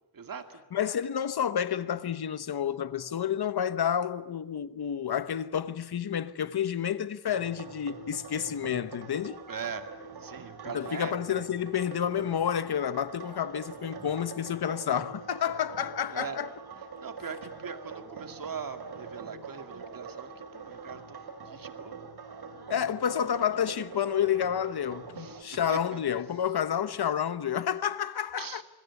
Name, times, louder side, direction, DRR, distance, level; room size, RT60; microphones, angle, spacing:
voice 1, 0.1-0.6 9.5-9.9 10.2-11.1 16.1-16.4 17.0-21.9 25.2-26.0 28.4-28.6, right 6 dB, 60° right, 2.3 m, -41 dB
voice 2, 0.7-9.4 10.7-16.5 22.7-28.6, left 9 dB, 80° left, 1.1 m, -30 dB
sound 1, 7.3-25.4, right 5 dB, 80° right, 3.0 m, -44 dB
26.5 x 22.0 x 9.7 m
wide cardioid pair, 155°, 38 cm